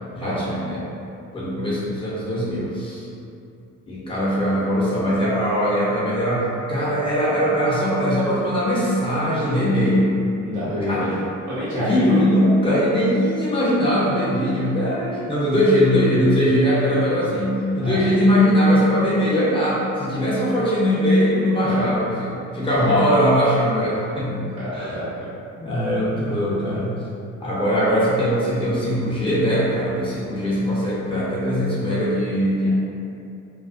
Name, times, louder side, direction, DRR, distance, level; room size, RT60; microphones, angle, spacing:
voice 1, 0.1-0.8 1.3-3.1 3.9-10.2 10.8-11.1 11.7-24.5 24.7-25.0 25.6-26.9 27.4-32.7, equal, 15° left, -8 dB, 0.7 m, -20 dB
voice 2, 10.4-12.2 17.8-18.1 21.6-21.9 22.6-23.0 24.6-25.3, equal, 70° right, -10 dB, 1.1 m, -28 dB
2.4 x 2.1 x 2.4 m, 2.6 s
cardioid pair, 90°, 30 cm